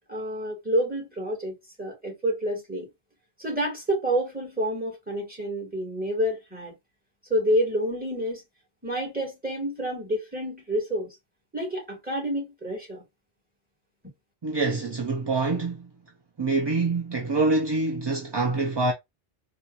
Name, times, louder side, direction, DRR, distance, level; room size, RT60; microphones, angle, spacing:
voice 1, 0.1-2.9 3.4-6.7 7.3-8.4 8.8-11.2 11.5-13.0, equal, 10° right, 2.2 m, -28 dB
voice 2, 14.4-15.9 16.4-18.9, right 3 dB, 30° right, 0.5 m, -25 dB
4.3 x 2.5 x 2.5 m
omnidirectional pair, 1.1 m